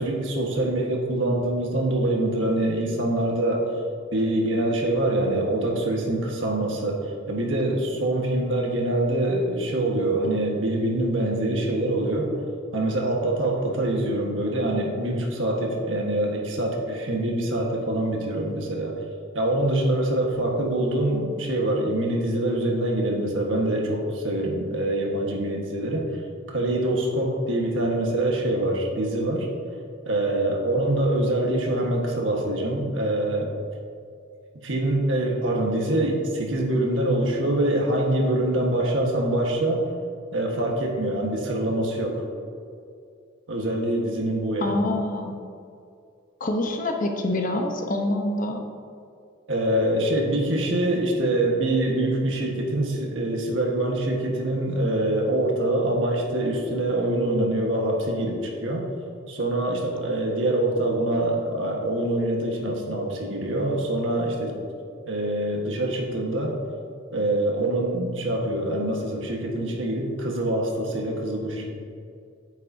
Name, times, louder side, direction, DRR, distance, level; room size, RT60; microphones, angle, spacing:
voice 1, 0.0-3.7 4.1-19.0 19.3-26.1 26.5-29.5 30.0-33.5 34.6-39.9 40.3-42.2 43.5-44.8 49.5-58.9 59.3-64.6 65.1-66.6 67.1-71.7, right 1 dB, 80° right, 0 dB, 1.4 m, -25 dB
voice 2, 44.6-45.3 46.4-48.6, left 1 dB, 45° left, 4 dB, 0.9 m, -26 dB
9.0 x 8.5 x 2.7 m, 2.4 s
head